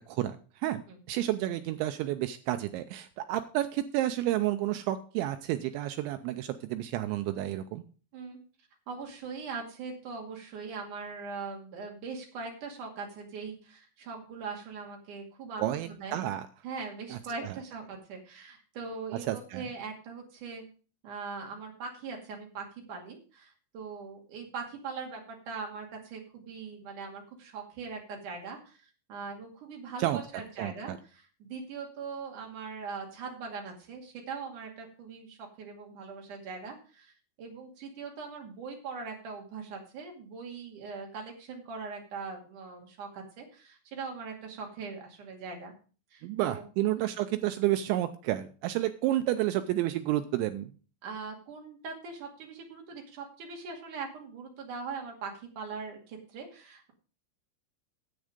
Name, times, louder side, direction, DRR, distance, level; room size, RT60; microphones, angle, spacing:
voice 1, 0.1-0.8 1.1-7.8 15.6-16.5 17.1-17.5 19.3-19.6 30.0-30.2 30.6-31.0 46.2-50.7, right 14 dB, 85° right, 9 dB, 2.6 m, -30 dB
voice 2, 8.9-16.2 16.6-20.6 21.0-37.1 37.4-45.7 46.1-46.6 47.0-47.1 51.0-56.9, right 5 dB, 50° right, 1 dB, 3.1 m, -41 dB
10.0 x 8.2 x 5.1 m, 0.38 s
omnidirectional pair, 5.8 m